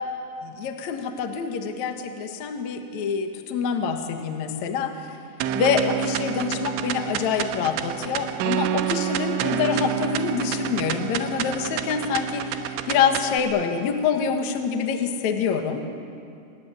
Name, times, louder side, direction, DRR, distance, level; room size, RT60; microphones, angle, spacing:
voice 1, 0.4-5.2 5.6-15.9, left 6 dB, 65° left, 5 dB, 1.9 m, -26 dB
sound 1, 5.4-13.4, right 9 dB, 90° right, 3.4 m, -28 dB
26.0 x 19.5 x 8.9 m, 2.5 s
omnidirectional pair, 5.5 m